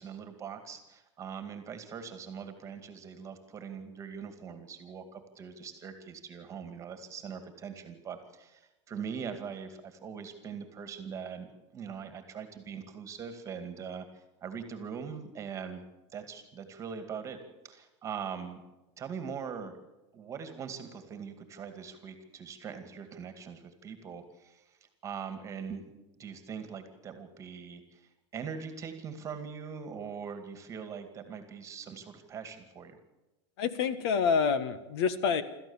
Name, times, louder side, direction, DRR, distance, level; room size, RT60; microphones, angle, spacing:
voice 1, 0.0-11.5 11.7-15.9 16.1-17.4 17.6-18.6 19.0-19.7 20.1-24.8 25.0-25.9 26.2-33.0, right 6 dB, 20° right, 8 dB, 2.2 m, -42 dB
voice 2, 33.6-35.4, left 6 dB, 65° left, 12 dB, 1.6 m, -27 dB
26.5 x 14.0 x 7.2 m, 1.0 s
supercardioid pair, 155°, 15 cm